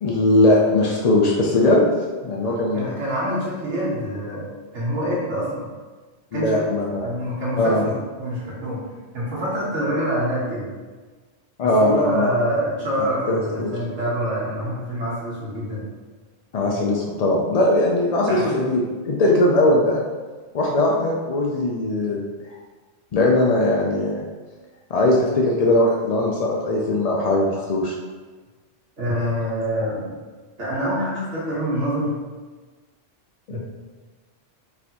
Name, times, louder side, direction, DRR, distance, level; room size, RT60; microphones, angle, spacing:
voice 1, 0.0-1.9 2.2-2.9 6.3-7.1 7.6-7.8 11.6-12.3 13.3-13.7 16.5-20.0 20.5-22.2 22.5-22.6 23.1-24.2 24.9-27.9, left 2 dB, 65° left, -2 dB, 0.3 m, -20 dB
voice 2, 2.4-4.5 4.7-5.7 6.3-6.7 7.0-8.8 9.1-10.7 11.6-15.8 18.3-18.5 29.0-30.1 30.6-32.1 33.5-33.6, equal, 80° right, -7 dB, 1.5 m, -26 dB
4.1 x 3.3 x 2.9 m, 1.4 s
omnidirectional pair, 1.2 m